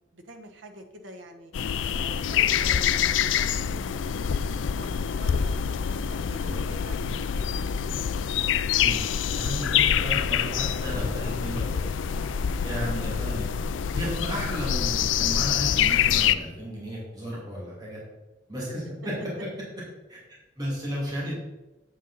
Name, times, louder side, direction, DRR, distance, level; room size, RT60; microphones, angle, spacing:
voice 1, 0.1-1.5 2.0-5.5 6.1-7.7 12.1-12.5 21.2-21.4, equal, 80° right, 4 dB, 1.2 m, -46 dB
sound 1, 1.5-16.4, left 8 dB, 80° left, 0.4 m, -26 dB
voice 2, 9.3-11.9 12.6-13.7 13.9-18.0 18.5-19.1 20.1-20.2 20.6-21.4, equal, 20° right, -6 dB, 2.8 m, -33 dB
8.3 x 7.5 x 4.1 m, 1.1 s
head